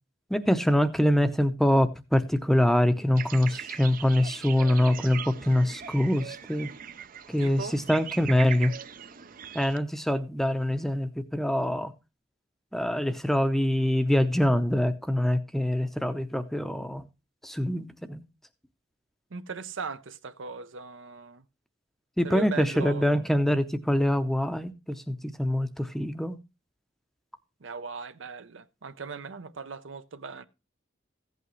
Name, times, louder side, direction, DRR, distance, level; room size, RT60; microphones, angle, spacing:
voice 1, 0.3-6.7 7.3-8.7 9.5-11.9 12.7-17.0 17.4-18.2 22.2-26.4, left 1 dB, ahead, 0.6 m, -24 dB
sound 1, 3.2-9.8, right 8 dB, 45° right, 0.5 m, -40 dB
voice 2, 7.4-7.8 19.3-21.4 22.2-23.2 27.6-30.4, right 5 dB, 80° right, 0.7 m, -38 dB
15.0 x 8.3 x 3.1 m
head